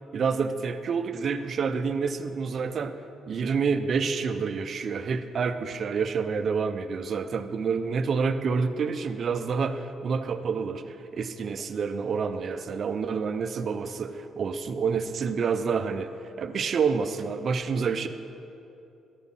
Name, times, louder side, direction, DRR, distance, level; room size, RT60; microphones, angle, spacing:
voice 1, 0.1-2.9 3.3-16.1 16.4-18.1, right 5 dB, 40° right, 10 dB, 0.4 m, -28 dB
13.0 x 5.3 x 4.1 m, 2.8 s
cardioid pair, 150°, 0 cm